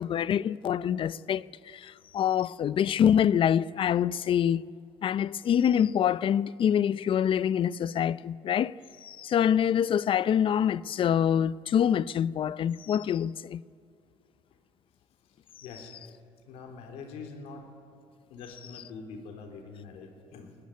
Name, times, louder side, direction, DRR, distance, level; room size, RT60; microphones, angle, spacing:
voice 1, 0.0-4.6 5.0-8.7 9.0-13.6, left 9 dB, 55° left, 0.5 m, -25 dB
voice 2, 15.3-15.9 16.5-17.7 18.3-20.6, left 4 dB, 85° left, 3.4 m, -44 dB
21.5 x 18.5 x 9.6 m
cardioid pair, 85°, 11 cm